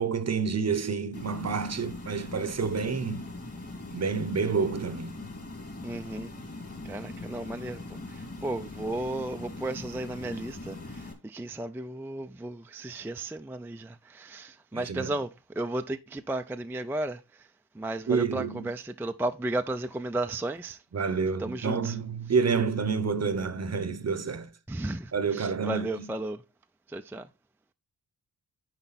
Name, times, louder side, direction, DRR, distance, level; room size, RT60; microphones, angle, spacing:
voice 1, 0.0-3.3 3.9-5.2 14.7-15.2 18.1-18.7 20.9-24.5 25.1-26.2, right 5 dB, 40° right, 0.8 m, -29 dB
sound 1, 1.1-11.1, left 2 dB, 35° left, 2.4 m, -41 dB
voice 2, 5.8-6.3 6.9-7.8 8.4-10.8 11.3-15.3 15.6-17.2 17.8-20.8 21.4-21.9 24.7-25.1 25.3-26.4 26.9-27.2, right 2 dB, 5° right, 0.4 m, -33 dB
9.9 x 4.5 x 4.1 m
wide cardioid pair, 110°, 40 cm